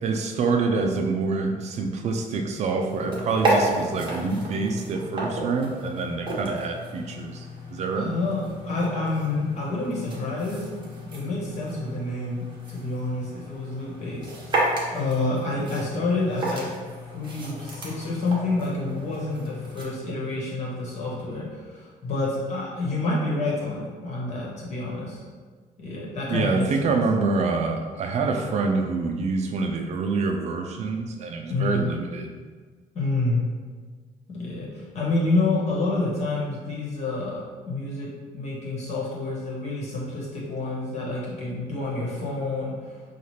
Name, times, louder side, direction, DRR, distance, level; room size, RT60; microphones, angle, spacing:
voice 1, 0.0-8.1 26.3-32.3, right 4 dB, 50° right, 3 dB, 0.4 m, -26 dB
sound 1, 2.9-19.8, right 1 dB, 30° right, 0.9 m, -32 dB
voice 2, 7.9-10.7 11.1-14.6 14.9-16.7 17.0-25.2 25.8-27.0 31.5-31.8 32.9-33.4 34.3-38.1 38.3-43.0, left 2 dB, 50° left, -4 dB, 1.2 m, -28 dB
5.6 x 2.4 x 3.2 m, 1.5 s
cardioid pair, 155°, 15 cm